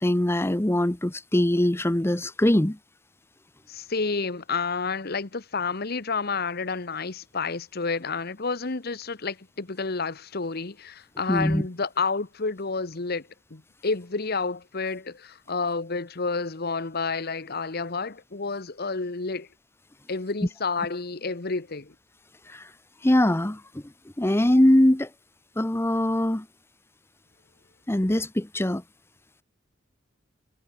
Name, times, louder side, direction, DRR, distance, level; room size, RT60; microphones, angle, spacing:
voice 1, 0.0-2.8 11.3-11.6 22.5-22.7 23.0-23.8 24.2-25.1 25.6-26.5 27.9-28.8, left 1 dB, 15° left, 0.8 m, -22 dB
voice 2, 3.7-19.5 20.1-21.9, left 4 dB, 55° left, 1.2 m, -30 dB
head